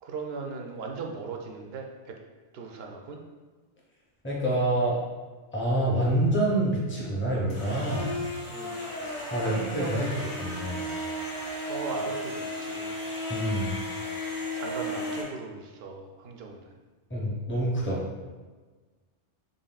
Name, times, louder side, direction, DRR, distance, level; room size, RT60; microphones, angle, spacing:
voice 1, 0.0-2.2 2.5-3.2 8.5-8.8 9.4-10.2 11.6-13.0 14.6-16.7, right 4 dB, 70° right, 2 dB, 0.7 m, -38 dB
voice 2, 4.2-5.0 5.5-8.2 9.0-10.9 13.3-13.7 17.1-18.0, right 1 dB, 15° left, -5 dB, 0.6 m, -27 dB
sound 1, 7.5-15.2, left 1 dB, 50° left, 1.3 m, -34 dB
4.0 x 3.6 x 2.3 m, 1.3 s
omnidirectional pair, 1.2 m